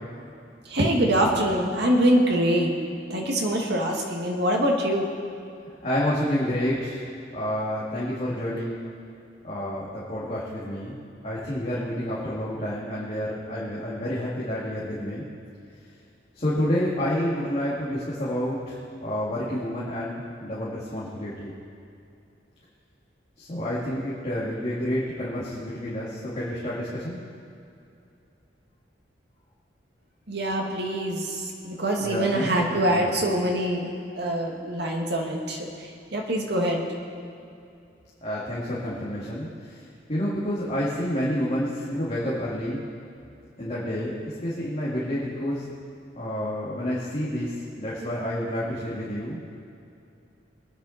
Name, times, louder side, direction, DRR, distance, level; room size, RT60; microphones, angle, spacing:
voice 1, 0.7-2.7 3.1-5.1 30.3-33.9 34.1-36.8, right 1 dB, 65° right, 0 dB, 2.1 m, -24 dB
voice 2, 5.8-8.8 9.4-11.0 11.2-15.2 16.3-21.5 23.4-27.2 32.0-33.3 38.2-42.9 43.6-44.1 44.4-45.7 46.2-49.4, equal, 40° left, -8 dB, 2.6 m, -29 dB
23.5 x 9.7 x 4.3 m, 2.6 s
head